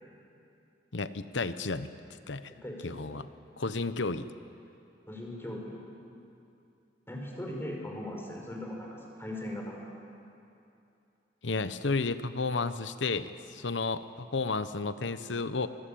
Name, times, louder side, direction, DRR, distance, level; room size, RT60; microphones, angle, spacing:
voice 1, 0.9-1.9 2.3-2.5 2.8-3.3 3.6-4.3 11.4-15.7, left 3 dB, 90° left, 12 dB, 1.0 m, -32 dB
voice 2, 2.6-3.0 5.1-5.8 7.1-9.8, left 1 dB, 15° left, 0 dB, 4.9 m, -39 dB
24.5 x 21.5 x 8.6 m, 2.7 s
head